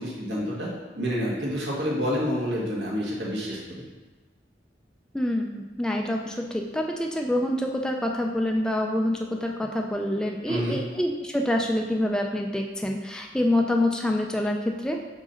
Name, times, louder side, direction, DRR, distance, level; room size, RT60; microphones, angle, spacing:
voice 1, 0.0-3.8 10.5-10.8, equal, 75° right, -4 dB, 1.6 m, -28 dB
voice 2, 5.1-15.0, left 1 dB, 5° left, 1 dB, 0.3 m, -26 dB
4.7 x 4.0 x 5.6 m, 1.3 s
head